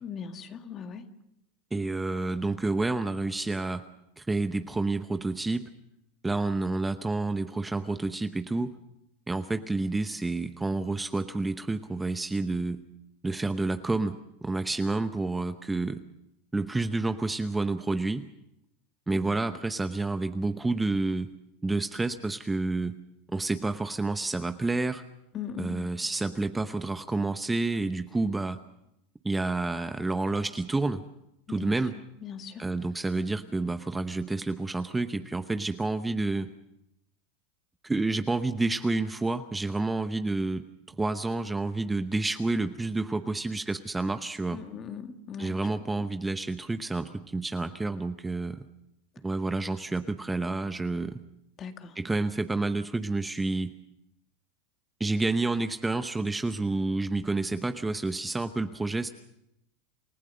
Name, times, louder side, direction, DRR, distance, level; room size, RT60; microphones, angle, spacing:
voice 1, 0.0-1.1 19.3-19.4 25.3-25.9 31.6-32.6 44.5-45.5 46.0-46.1 51.6-52.0, left 7 dB, 35° left, 7 dB, 1.9 m, -40 dB
voice 2, 1.7-3.8 4.2-5.7 6.2-8.7 9.3-12.8 13.2-16.0 16.5-18.3 19.1-21.3 21.6-23.0 23.3-25.0 25.6-28.6 29.2-31.0 31.5-32.0 32.6-36.5 37.8-44.6 45.4-48.6 49.2-51.2 52.0-53.7 55.0-59.1, right 2 dB, 10° right, 9 dB, 0.9 m, -29 dB
28.5 x 15.0 x 6.6 m, 0.83 s
supercardioid pair, 120°, 0 cm